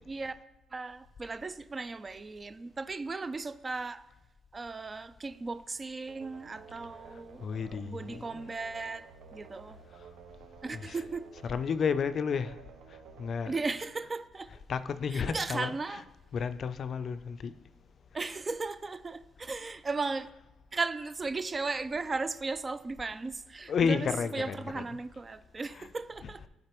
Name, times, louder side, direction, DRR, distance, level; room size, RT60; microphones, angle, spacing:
voice 1, 0.7-4.0 4.5-9.8 10.6-11.3 13.5-14.5 15.1-16.0 18.1-20.3 20.7-26.4, right 3 dB, 30° right, 0.3 m, -36 dB
sound 1, 6.1-14.8, right 5 dB, 85° right, 0.6 m, -53 dB
voice 2, 7.4-8.4 10.7-11.0 11.4-12.5 13.2-13.6 14.7-16.0 16.3-17.5 23.7-24.9 25.7-25.9 26.2-26.3, left 6 dB, 55° left, 0.4 m, -32 dB
9.8 x 4.0 x 3.0 m
cardioid pair, 90°, 0 cm